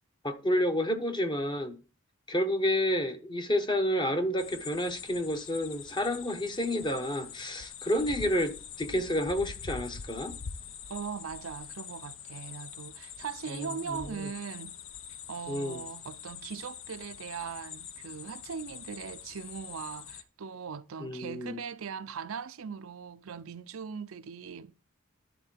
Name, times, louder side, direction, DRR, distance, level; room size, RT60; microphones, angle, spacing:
voice 1, 0.2-1.8 2.3-10.4 13.5-14.3 15.5-15.8 21.0-21.6, equal, 20° left, 0.9 m, -30 dB
sound 1, 4.4-20.2, left 7 dB, 65° left, 0.7 m, -44 dB
voice 2, 10.9-14.8 15.3-24.8, right 6 dB, 80° right, 0.5 m, -40 dB
11.0 x 3.8 x 7.4 m
head